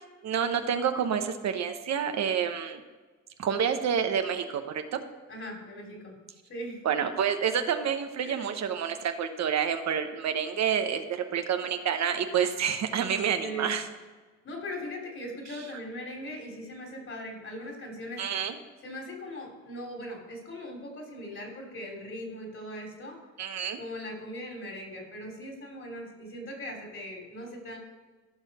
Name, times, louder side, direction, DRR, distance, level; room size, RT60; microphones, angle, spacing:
voice 1, 0.2-2.8 3.4-4.6 4.9-5.0 6.8-13.8 18.2-18.6 23.4-23.8, right 8 dB, 65° right, 7 dB, 1.0 m, -28 dB
voice 2, 5.3-6.1 6.5-6.8 8.2-8.4 13.4-13.8 14.4-18.2 18.8-23.2 23.8-27.8, equal, 45° left, 1 dB, 3.3 m, -39 dB
15.0 x 5.7 x 4.2 m, 1.3 s
cardioid pair, 90°, 30 cm